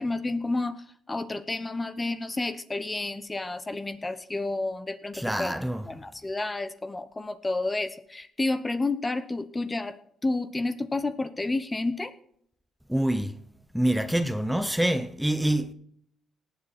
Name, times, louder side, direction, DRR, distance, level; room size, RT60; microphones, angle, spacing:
voice 1, 0.0-5.6 5.9-12.1, left 2 dB, 20° left, 1.0 m, -30 dB
voice 2, 5.1-5.8 12.9-13.4 13.7-15.7, right 1 dB, 5° right, 0.9 m, -26 dB
18.5 x 7.9 x 4.3 m
cardioid pair, 90°, 0 cm